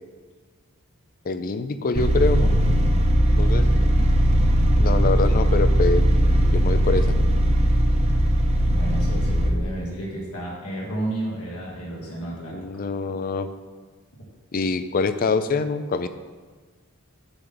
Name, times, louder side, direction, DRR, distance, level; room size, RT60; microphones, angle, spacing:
voice 1, 1.2-2.5 3.4-3.7 4.8-6.1 6.4-7.2 12.5-13.5 14.5-16.1, left 4 dB, 40° left, 11 dB, 0.4 m, -25 dB
sound 1, 1.9-9.5, equal, 30° right, 0.6 m, -19 dB
voice 2, 3.6-4.1 8.6-12.6, right 1 dB, 90° left, -3 dB, 1.7 m, -32 dB
7.8 x 3.9 x 6.8 m, 1.4 s
head